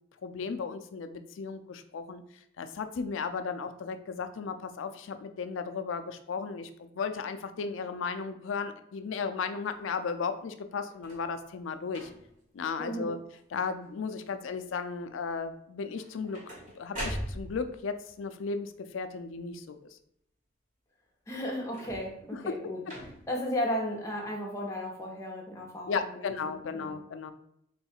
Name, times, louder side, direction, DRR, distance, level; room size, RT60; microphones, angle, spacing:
voice 1, 0.2-2.2 2.6-12.1 12.5-13.2 13.5-16.4 16.7-19.8 22.3-22.6 25.9-27.3, left 5 dB, 80° left, 9 dB, 0.4 m, -35 dB
sound 1, 10.9-11.3 11.9-12.4 13.0-13.4 13.7-14.2 15.9-17.8 21.6-22.2 22.8-23.4 24.2-24.3, equal, 40° right, 1.3 m, -41 dB
voice 2, 12.8-13.1 21.3-22.8 23.3-26.9, equal, 15° left, -2 dB, 0.8 m, -35 dB
3.8 x 2.3 x 4.3 m, 0.73 s
head